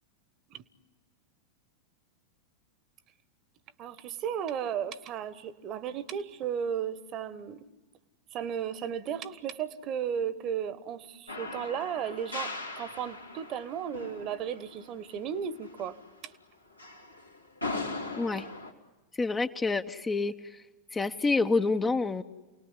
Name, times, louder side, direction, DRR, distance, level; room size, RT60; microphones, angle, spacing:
voice 1, 3.8-7.7 8.3-16.0 16.2-16.3, right 8 dB, 35° right, 16 dB, 1.3 m, -35 dB
sound 1, 11.3-16.3 16.8-18.7, left 3 dB, 85° left, 2.5 m, -40 dB
voice 2, 19.1-20.6 20.9-22.2, left 3 dB, 15° left, 9 dB, 0.9 m, -28 dB
29.0 x 19.5 x 9.9 m, 1.2 s
figure-of-eight pair, 90°, 0 cm